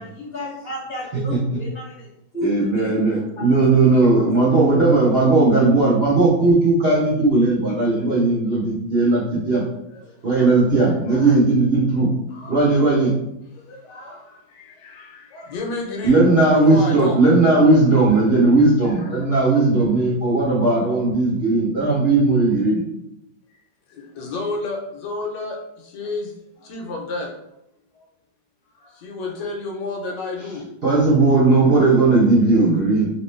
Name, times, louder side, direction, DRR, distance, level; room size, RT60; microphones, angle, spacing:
voice 1, 0.0-3.0 3.3-4.2, equal, 45° left, -5 dB, 0.9 m, -32 dB
voice 2, 2.4-9.6 10.2-12.1 12.5-13.1 16.0-22.8 30.8-33.1, right 3 dB, 45° right, -7 dB, 0.8 m, -17 dB
voice 3, 9.9-10.5 10.8-11.4 12.3-12.7 13.5-17.2 18.9-19.3 23.9-27.3 27.9-28.1 28.7-30.7, left 3 dB, 75° left, 1 dB, 1.2 m, -32 dB
3.0 x 2.9 x 3.2 m, 0.80 s
omnidirectional pair, 2.0 m